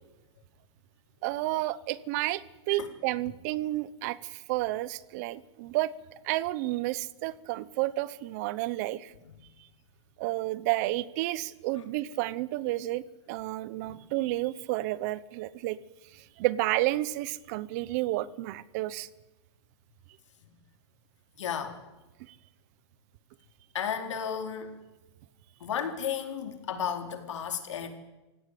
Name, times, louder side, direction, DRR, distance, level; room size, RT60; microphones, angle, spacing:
voice 1, 1.2-5.9 6.2-9.1 10.2-15.8 16.1-19.1 22.3-22.4, right 17 dB, 35° right, 19 dB, 0.9 m, -31 dB
voice 2, 21.4-21.8 23.7-24.7 25.6-27.9, left 8 dB, 90° left, 6 dB, 4.3 m, -33 dB
28.0 x 17.0 x 8.5 m, 1.1 s
supercardioid pair, 170°, 15 cm